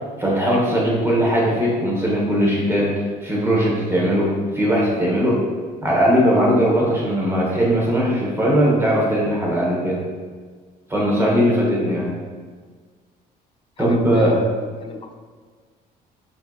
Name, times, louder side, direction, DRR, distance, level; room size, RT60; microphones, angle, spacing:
voice 1, 0.2-2.9 3.2-4.3 4.5-5.4 5.8-10.0 10.9-12.1 13.8-14.3, equal, 15° right, -4 dB, 1.2 m, -19 dB
voice 2, 13.8-15.2, left 3 dB, 30° left, 5 dB, 0.4 m, -33 dB
5.3 x 2.9 x 2.4 m, 1.5 s
cardioid pair, 110°, 17 cm